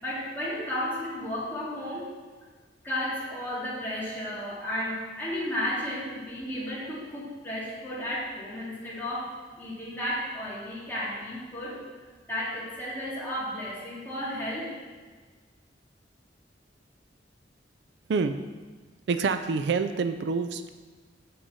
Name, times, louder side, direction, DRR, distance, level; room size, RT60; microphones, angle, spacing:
voice 1, 0.0-2.1 2.8-11.8 12.3-14.7, left 1 dB, 10° left, -8 dB, 2.4 m, -33 dB
voice 2, 19.1-20.7, right 4 dB, 70° right, 9 dB, 0.4 m, -27 dB
6.9 x 5.5 x 5.6 m, 1.4 s
head